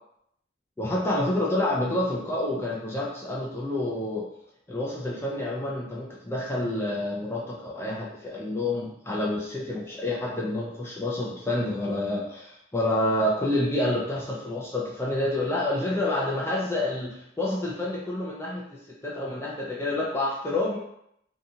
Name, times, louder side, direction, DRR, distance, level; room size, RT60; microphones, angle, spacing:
voice 1, 0.8-4.3 4.7-20.8, left 1 dB, 10° left, -4 dB, 0.3 m, -28 dB
2.7 x 2.3 x 2.7 m, 0.75 s
head